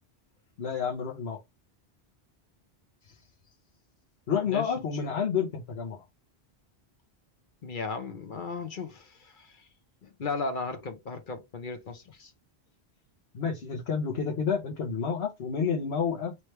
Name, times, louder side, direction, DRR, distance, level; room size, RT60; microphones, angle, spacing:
voice 1, 0.6-1.4 4.3-6.0 13.3-16.4, left 6 dB, 70° left, 1.3 m, -29 dB
voice 2, 7.6-9.7 10.0-12.3, left 4 dB, 55° left, 0.9 m, -36 dB
3.3 x 3.2 x 4.3 m
omnidirectional pair, 1.1 m